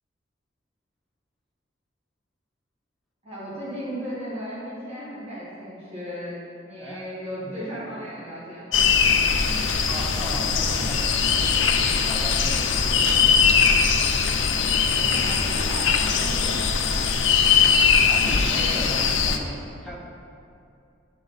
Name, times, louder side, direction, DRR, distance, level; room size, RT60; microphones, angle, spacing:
voice 1, 3.2-8.8 15.0-17.1, equal, 30° right, -10 dB, 1.7 m, -36 dB
voice 2, 7.4-7.7 9.8-14.2 18.1-20.0, equal, ahead, -6 dB, 1.0 m, -37 dB
sound 1, 8.7-19.4, left 6 dB, 80° left, 0.5 m, -21 dB
9.7 x 3.9 x 3.9 m, 2.5 s
head